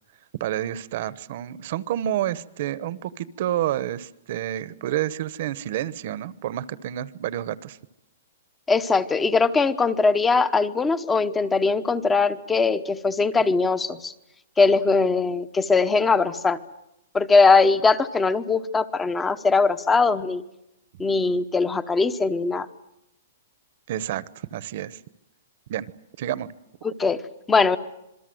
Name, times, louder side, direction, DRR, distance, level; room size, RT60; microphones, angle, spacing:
voice 1, 0.4-7.8 23.9-25.0 25.7-25.9 26.2-26.5, right 12 dB, 45° right, 17 dB, 1.1 m, -29 dB
voice 2, 8.7-14.1 14.6-16.6 17.1-20.4 21.0-22.7 26.8-27.2 27.5-27.8, left 4 dB, 10° left, 14 dB, 0.9 m, -21 dB
27.0 x 22.5 x 7.9 m, 0.88 s
hypercardioid pair, 170°, 0 cm